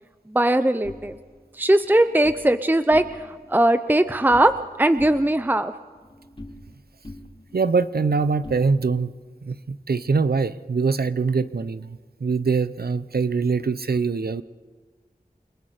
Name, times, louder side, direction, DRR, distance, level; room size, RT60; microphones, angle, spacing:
voice 1, 0.3-1.1 1.5-5.7, right 1 dB, 10° right, 11 dB, 0.6 m, -20 dB
sound 1, 0.8-2.4 2.8-3.5 3.7-4.7 5.0-6.8 7.0-9.1, left 1 dB, 35° left, 3.2 m, -43 dB
voice 2, 7.5-9.1 9.4-14.4, right 4 dB, 85° right, 13 dB, 0.7 m, -23 dB
28.5 x 21.5 x 5.1 m, 1.4 s
wide cardioid pair, 55°, 16 cm